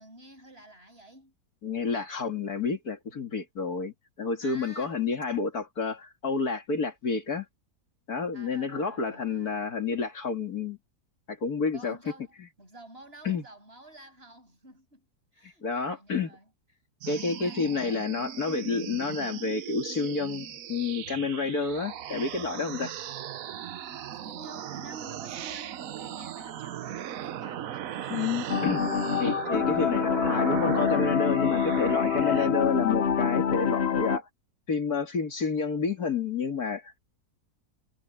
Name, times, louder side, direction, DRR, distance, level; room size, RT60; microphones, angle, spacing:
voice 1, 0.0-1.3 4.4-5.0 8.3-9.7 11.7-15.1 15.3-16.5 17.0-18.0 18.4-18.6 24.1-28.4, right 1 dB, 35° right, 7.5 m, -50 dB
voice 2, 1.6-7.5 8.1-10.8 11.3-12.0 13.2-13.4 15.6-16.4 17.1-22.9 28.1-28.8 29.1-34.3 34.7-36.9, left 5 dB, 60° left, 2.8 m, -29 dB
sound 1, 17.0-32.5, right 10 dB, 60° right, 1.1 m, -37 dB
sound 2, 28.5-34.2, left 7 dB, 45° left, 1.0 m, -26 dB
omnidirectional pair, 1.8 m